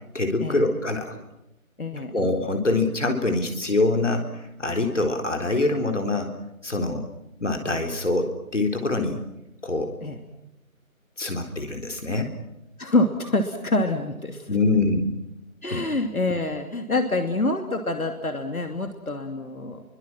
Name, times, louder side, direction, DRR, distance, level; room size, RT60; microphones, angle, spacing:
voice 1, 0.1-1.2 2.1-6.3 6.6-7.1 7.4-9.2 9.6-9.9 11.2-12.3 14.5-15.1 15.7-15.9, left 2 dB, 55° left, 3 dB, 3.9 m, -24 dB
voice 2, 1.8-2.2 10.0-10.2 12.8-14.5 15.6-19.8, left 2 dB, 80° left, 5 dB, 3.0 m, -26 dB
30.0 x 24.0 x 6.1 m, 0.91 s
figure-of-eight pair, 175°, 42 cm